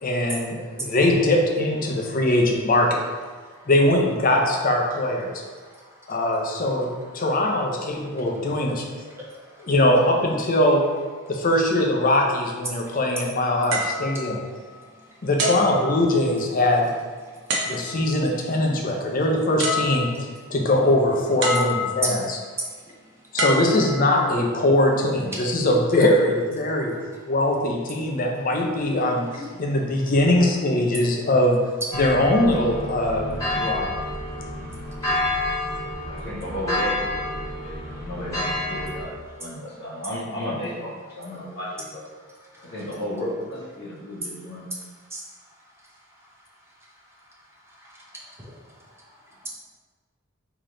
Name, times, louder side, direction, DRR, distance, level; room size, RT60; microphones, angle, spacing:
voice 1, 0.0-3.0 3.7-5.4 6.1-8.9 9.6-10.8 11.3-14.4 15.2-16.9 17.6-22.4 23.3-26.9 27.3-31.6 31.9-33.9, left 1 dB, 40° left, 1 dB, 0.5 m, -21 dB
voice 2, 5.6-6.1 9.1-9.7 12.8-13.0 14.7-14.8 20.2-20.3 25.3-25.4 29.4-29.5 42.5-42.7 45.1-45.2 47.8-48.6, right 1 dB, 10° right, -4 dB, 0.6 m, -42 dB
sound 1, 13.7-14.9 15.4-16.5 17.5-18.2 19.2-19.3 19.6-20.4 21.4-22.2 23.4-24.5 25.2-25.5, left 1 dB, 55° right, 0.6 m, -27 dB
sound 2, 31.9-39.0, left 1 dB, 15° left, 1.2 m, -29 dB
voice 3, 36.0-37.1 37.4-42.1 42.6-44.6, equal, 55° left, -7 dB, 1.1 m, -33 dB
3.3 x 2.9 x 3.8 m, 1.4 s
head